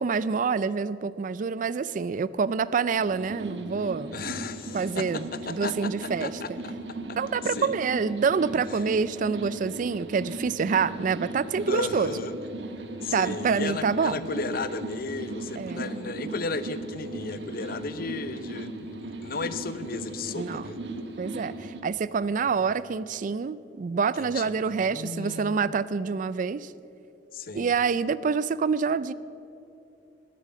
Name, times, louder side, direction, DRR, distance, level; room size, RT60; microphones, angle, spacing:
voice 1, 0.0-4.1 4.7-6.6 7.2-12.1 13.1-14.2 15.6-16.3 20.4-20.7 21.2-26.7 27.5-29.1, right 5 dB, 45° right, 17 dB, 0.4 m, -27 dB
Laundromat Ambience, 3.0-21.8, right 2 dB, 80° right, 1.3 m, -37 dB
voice 2, 4.1-6.7 7.1-7.2 7.4-7.7 11.7-12.3 13.0-20.8 24.2-25.7 27.3-27.7, left 3 dB, 55° left, 13 dB, 0.7 m, -35 dB
19.0 x 8.5 x 7.6 m, 2.7 s
head